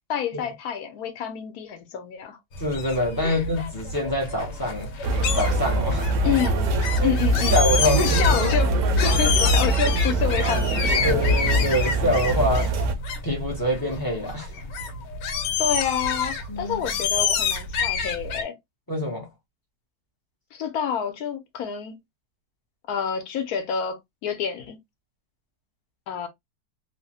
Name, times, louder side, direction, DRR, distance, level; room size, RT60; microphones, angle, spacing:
voice 1, 0.1-2.4 3.2-3.4 6.2-6.7 7.0-11.2 15.6-18.6 20.5-22.0 22.9-24.8 26.1-26.3, left 8 dB, 65° left, 1.1 m, -28 dB
sound 1, 2.5-18.4, left 5 dB, 85° left, 1.3 m, -29 dB
voice 2, 2.6-4.9 5.3-6.3 7.0-7.1 7.5-8.5 11.0-12.8 13.2-14.5 16.5-16.8 18.9-19.3, left 1 dB, 30° left, 0.4 m, -25 dB
sound 2, 5.0-12.9, right 1 dB, 70° right, 0.7 m, -23 dB
3.0 x 2.1 x 2.7 m
omnidirectional pair, 1.8 m